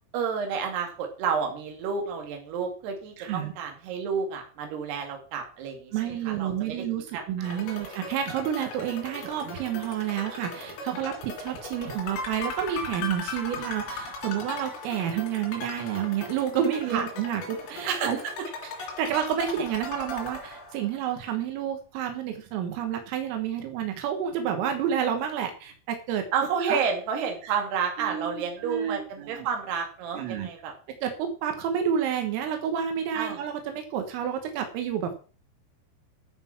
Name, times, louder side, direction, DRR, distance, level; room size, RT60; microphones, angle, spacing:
voice 1, 0.1-5.9 6.3-6.8 7.1-7.8 16.9-17.1 17.9-18.3 26.3-30.7 33.1-33.4, right 6 dB, 60° right, 3 dB, 4.1 m, -30 dB
voice 2, 3.2-3.5 5.9-18.2 18.8-26.3 26.7-26.8 27.4-27.5 28.0-29.5 30.1-30.5 30.9-35.3, right 9 dB, 85° right, 5 dB, 4.0 m, -30 dB
sound 1, 7.4-21.1, left 3 dB, 85° left, 5.8 m, -38 dB
14.0 x 5.9 x 6.0 m, 0.38 s
omnidirectional pair, 5.9 m